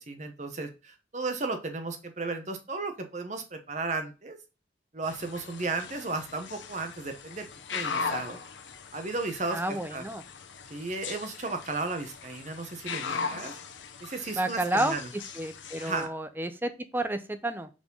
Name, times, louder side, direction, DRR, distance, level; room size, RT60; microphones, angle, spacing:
voice 1, 0.1-4.4 4.9-8.4 8.9-10.0 10.7-13.5 14.0-15.1 15.8-16.1, right 3 dB, 40° right, 7 dB, 0.9 m, -34 dB
sound 1, 5.0-16.1, left 5 dB, 85° left, 0.9 m, -39 dB
voice 2, 9.5-10.2 14.3-17.7, right 1 dB, 10° right, 10 dB, 0.5 m, -31 dB
4.9 x 4.2 x 5.3 m, 0.31 s
head